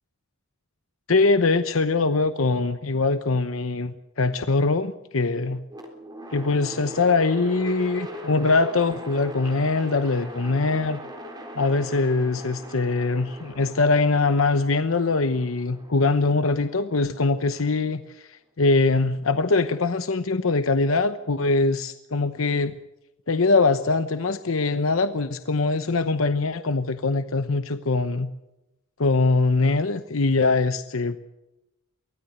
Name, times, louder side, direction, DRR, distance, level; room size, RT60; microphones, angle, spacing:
voice 1, 1.1-5.6 6.3-11.0 11.6-22.8 23.3-28.3 29.0-31.2, left 3 dB, 80° left, 10 dB, 0.9 m, -22 dB
sound 1, 5.7-17.8, equal, 20° right, 3.8 m, -40 dB
24.0 x 16.5 x 8.0 m, 0.95 s
head